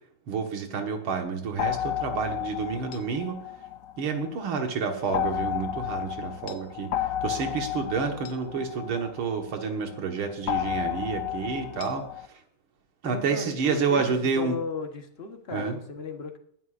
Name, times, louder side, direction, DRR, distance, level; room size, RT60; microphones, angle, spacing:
voice 1, 0.3-3.4 4.0-6.9 7.2-12.1 13.0-14.6 15.5-15.8, right 5 dB, 85° right, 3 dB, 2.4 m, -29 dB
sound 1, 1.6-4.4 5.1-9.7 10.5-12.3, left 11 dB, 70° left, 0.8 m, -32 dB
voice 2, 13.0-16.4, left 4 dB, 35° left, 4 dB, 1.2 m, -36 dB
19.5 x 11.0 x 2.6 m, 0.65 s
omnidirectional pair, 2.2 m